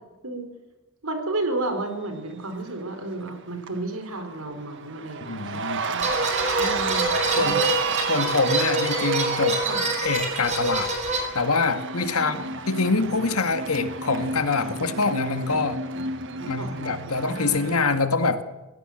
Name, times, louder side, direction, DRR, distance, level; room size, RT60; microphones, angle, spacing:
voice 1, 1.0-6.1 6.6-7.7 9.6-9.8 12.2-12.4 16.5-17.1, right 2 dB, 75° right, 7 dB, 4.4 m, -32 dB
Cheering, 2.9-3.3 3.7-17.8, right 4 dB, 55° right, 1.5 m, -31 dB
voice 2, 5.2-5.8 7.4-7.6 8.1-9.6 10.0-10.9 11.3-15.8 16.5-18.4, left 3 dB, 80° left, 9 dB, 1.9 m, -25 dB
sound 1, 6.0-11.2, right 1 dB, 30° right, 4.8 m, -26 dB
21.5 x 16.5 x 7.9 m, 1.1 s
head